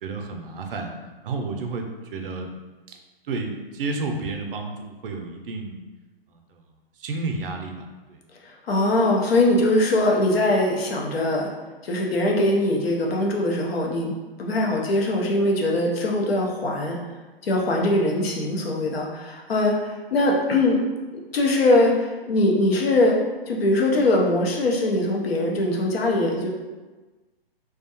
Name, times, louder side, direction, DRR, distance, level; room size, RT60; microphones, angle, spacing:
voice 1, 0.0-0.9 1.2-2.5 2.9-3.0 3.3-5.8 6.3-6.7 7.0-8.2, right 3 dB, 60° right, 3 dB, 0.5 m, -31 dB
voice 2, 8.7-11.5 11.8-14.1 14.4-17.0 17.4-20.8 21.1-23.2 23.5-26.5, left 1 dB, 75° left, -1 dB, 0.6 m, -21 dB
2.3 x 2.1 x 2.8 m, 1.3 s
hypercardioid pair, 135°, 30 cm